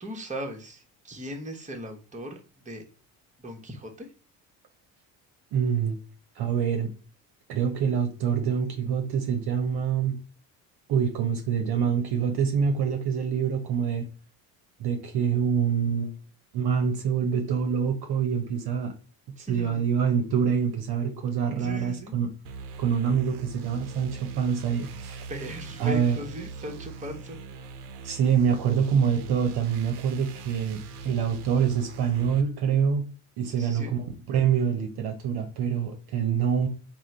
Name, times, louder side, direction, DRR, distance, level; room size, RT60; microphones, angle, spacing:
voice 1, 0.0-2.8 3.4-4.1 19.4-19.9 21.6-22.1 25.3-27.4 33.5-33.9, equal, 15° right, 2 dB, 1.1 m, -38 dB
voice 2, 5.5-6.0 6.4-6.9 7.5-10.2 10.9-14.1 14.8-16.2 16.5-18.9 19.3-22.3 22.8-25.3 25.8-26.2 28.0-33.1 33.4-36.7, right 7 dB, 55° right, 4 dB, 0.9 m, -26 dB
sound 1, 22.4-32.4, right 4 dB, 85° right, 0.7 m, -41 dB
3.6 x 2.3 x 4.3 m, 0.36 s
hypercardioid pair, 60°, 46 cm